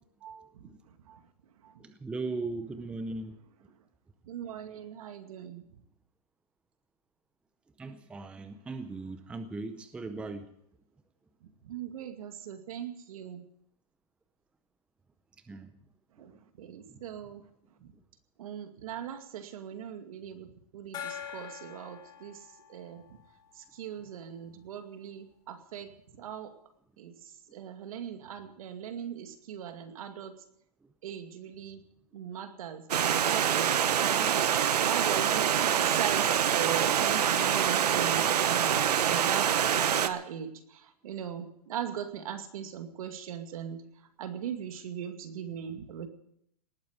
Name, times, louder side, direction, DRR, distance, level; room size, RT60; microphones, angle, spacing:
voice 1, 0.2-0.6 1.1-1.2 1.6-1.8 4.2-5.6 11.6-13.4 16.2-16.3 16.6-17.4 17.8-17.9 18.4-22.4 22.7-23.0 23.6-26.5 27.0-27.1 27.5-30.3 31.0-31.8 32.1-34.4 34.8-43.8 44.2-46.1, right 9 dB, 60° right, 7 dB, 2.3 m, -39 dB
voice 2, 1.8-3.4 7.8-10.5 15.5-15.7 16.6-17.0, right 3 dB, 5° right, 10 dB, 0.6 m, -38 dB
Gong, 20.9-24.2, left 9 dB, 20° left, 4.3 m, -44 dB
Stream, 32.9-40.1, right 9 dB, 85° right, 1.1 m, -25 dB
19.0 x 8.6 x 8.1 m, 0.73 s
hypercardioid pair, 155°, 20 cm